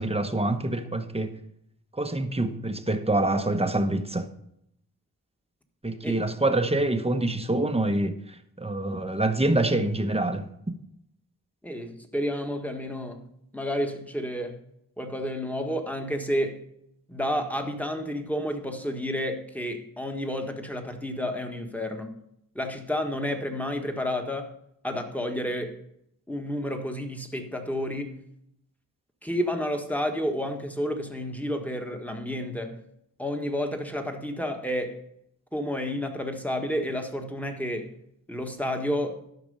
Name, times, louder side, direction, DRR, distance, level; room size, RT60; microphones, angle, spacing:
voice 1, 0.0-1.4 1.9-4.3 5.8-10.5, right 2 dB, 15° right, 1.0 m, -26 dB
voice 2, 11.6-13.3 13.5-14.6 15.0-16.6 17.1-22.1 22.5-24.5 24.8-25.8 26.3-28.2 29.2-32.8 33.2-35.0 35.5-37.9 38.3-39.2, equal, 5° left, 1.6 m, -30 dB
12.5 x 6.0 x 5.5 m
cardioid pair, 60°, 36 cm